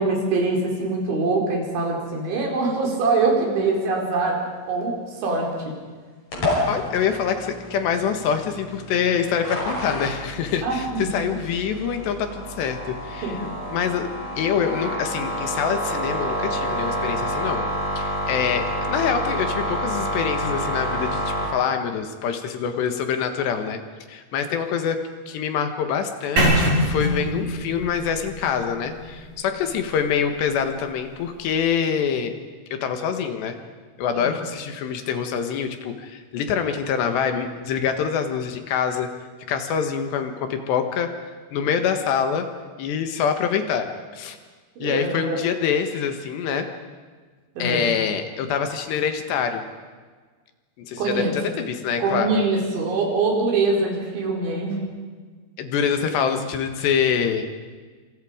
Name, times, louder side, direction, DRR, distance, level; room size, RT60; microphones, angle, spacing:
voice 1, 0.0-4.4 4.7-5.7 10.6-11.2 13.2-13.5 34.1-34.5 44.8-45.4 47.6-47.9 51.0-51.3 52.0-54.8, right 3 dB, 80° right, -1 dB, 6.8 m, -23 dB
sound 1, 6.3-21.4, equal, 40° left, 7.2 m, -28 dB
voice 2, 6.7-13.3 13.7-14.1 14.4-17.7 18.0-23.8 24.1-32.4 32.7-33.6 34.0-39.1 39.5-42.5 42.8-44.4 44.8-46.7 47.6-49.6 50.8-52.3 55.6-57.4, left 7 dB, 70° left, 6 dB, 3.6 m, -25 dB
sound 2, 26.4-30.3, right 1 dB, 50° right, 7.0 m, -24 dB
27.5 x 27.0 x 5.1 m, 1.5 s
omnidirectional pair, 5.2 m